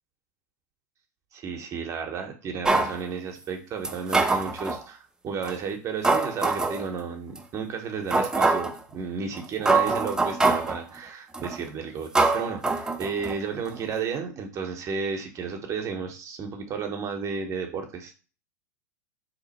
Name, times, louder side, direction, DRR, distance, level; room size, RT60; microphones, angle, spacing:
voice 1, 1.3-18.2, right 5 dB, 30° right, 4 dB, 0.8 m, -33 dB
sound 1, 2.6-3.0 3.8-4.8 5.4-5.5 6.0-6.8 7.4-7.5 8.1-8.8 9.4-9.5 9.7-10.8 11.3-11.6 12.1-13.4 13.7-13.8, right 3 dB, 5° right, 0.4 m, -24 dB
2.8 x 2.4 x 4.1 m, 0.35 s
hypercardioid pair, 105°, 10 cm